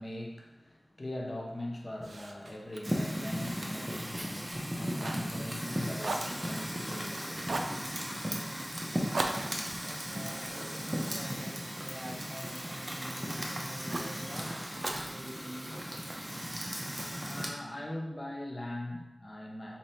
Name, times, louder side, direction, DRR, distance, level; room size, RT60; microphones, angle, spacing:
voice 1, 0.0-7.7 17.3-19.8, left 1 dB, 45° left, 0 dB, 0.7 m, -41 dB
Fire, 2.0-5.7 6.0-7.0 7.4-7.8 9.1-11.5 12.1-13.2 13.9-14.2 14.8-15.9, right 2 dB, 85° right, 0.3 m, -40 dB
Fire 2, 2.8-17.5, equal, 20° right, 0.7 m, -36 dB
voice 2, 9.8-15.8, equal, 45° right, -4 dB, 1.2 m, -46 dB
4.1 x 3.2 x 2.8 m, 0.96 s
wide cardioid pair, 50°, 0 cm